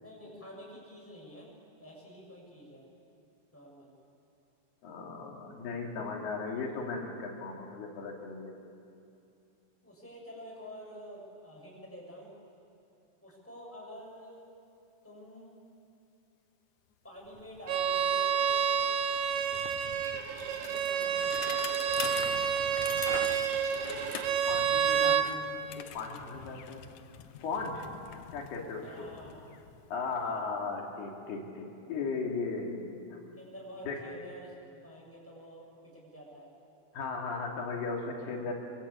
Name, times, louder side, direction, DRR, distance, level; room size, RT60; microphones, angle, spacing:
voice 1, 0.0-1.5 1.8-2.9 3.5-3.9 9.8-12.3 13.2-14.5 15.0-15.5 17.0-18.7 20.4-21.7 28.8-29.4 33.4-36.5, equal, 5° left, -3 dB, 7.1 m, -48 dB
voice 2, 4.8-8.5 24.5-26.9 27.4-27.8 28.3-29.1 29.9-33.2 33.9-34.0 36.9-38.5, left 4 dB, 85° left, 0 dB, 4.6 m, -37 dB
Bicycle, 17.2-17.3 17.5-30.5, left 10 dB, 70° left, 1.9 m, -45 dB
Bowed string instrument, 17.7-25.3, right 8 dB, 65° right, 2.1 m, -29 dB
26.0 x 24.0 x 8.5 m, 2.7 s
omnidirectional pair, 4.4 m